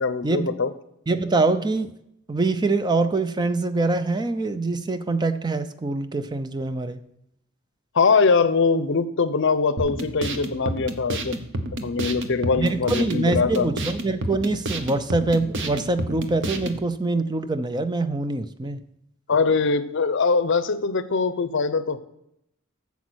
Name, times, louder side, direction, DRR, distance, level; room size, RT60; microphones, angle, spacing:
voice 1, 0.0-0.7 7.9-11.4 11.8-13.7 19.3-22.0, left 4 dB, 65° left, 13 dB, 0.7 m, -22 dB
voice 2, 1.1-1.9 2.3-7.0 12.6-18.8, right 3 dB, 20° right, 11 dB, 0.5 m, -24 dB
sound 1, 9.8-16.8, right 1 dB, 65° right, 1.0 m, -30 dB
8.3 x 7.2 x 6.3 m, 0.79 s
head